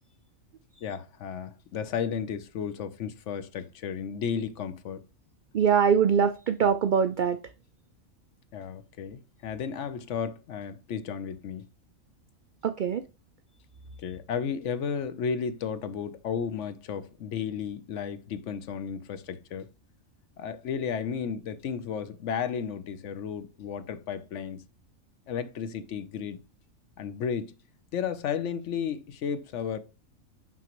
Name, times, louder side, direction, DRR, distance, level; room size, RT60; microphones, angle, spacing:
voice 1, 0.8-5.0 8.5-11.7 14.0-19.7 20.4-24.6 25.3-26.4 27.0-27.5 27.9-29.8, left 7 dB, 65° left, 0.9 m, -33 dB
voice 2, 5.5-7.4 12.6-13.0, right 7 dB, 80° right, 0.4 m, -23 dB
6.0 x 5.8 x 3.0 m
omnidirectional pair, 1.4 m